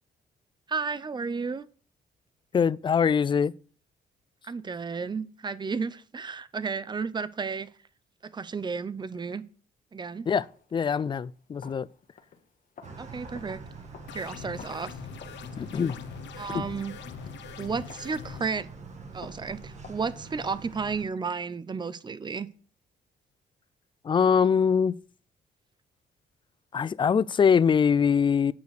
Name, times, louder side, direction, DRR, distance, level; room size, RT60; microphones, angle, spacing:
voice 1, 0.7-1.7 4.4-7.7 8.3-9.4 9.9-10.3 13.0-13.6 14.1-15.0 16.4-16.9 17.6-18.7 19.1-22.5, right 5 dB, 25° right, 0.7 m, -32 dB
voice 2, 2.5-3.5 10.3-10.5 10.7-11.9 15.6-16.0 16.5-16.6 24.0-25.0 26.7-28.5, left 6 dB, 25° left, 0.4 m, -23 dB
sound 1, 10.4-18.9 19.2-20.8, left 6 dB, 50° left, 1.5 m, -52 dB
sound 2, 12.8-21.0, right 3 dB, 40° right, 1.7 m, -45 dB
sound 3, 14.1-18.5, left 10 dB, 90° left, 0.6 m, -43 dB
9.1 x 5.1 x 6.5 m
cardioid pair, 130°, 18 cm